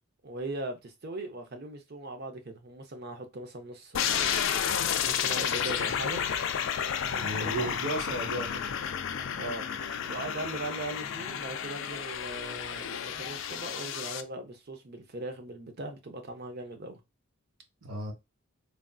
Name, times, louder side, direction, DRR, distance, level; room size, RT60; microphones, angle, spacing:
voice 1, 0.2-4.4 5.0-6.2 7.0-7.7 9.3-9.7 10.1-17.0, right 2 dB, 45° right, 0.6 m, -39 dB
sound 1, 3.9-14.2, left 8 dB, 60° left, 0.3 m, -31 dB
voice 2, 7.2-8.9 17.8-18.1, right 2 dB, 75° right, 1.1 m, -35 dB
3.3 x 2.6 x 2.3 m
head